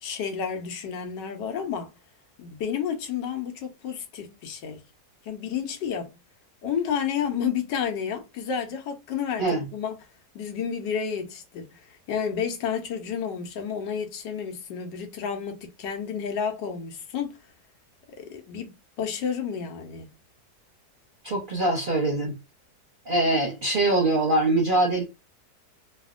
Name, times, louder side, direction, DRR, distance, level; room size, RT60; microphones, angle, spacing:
voice 1, 0.0-1.9 2.4-4.8 5.2-6.1 6.6-10.0 10.3-11.8 12.1-17.4 18.2-20.1, left 7 dB, 90° left, 1.4 m, -31 dB
voice 2, 21.2-22.3 23.1-25.0, right 2 dB, 50° right, 0.6 m, -23 dB
3.3 x 2.1 x 2.4 m
omnidirectional pair, 1.8 m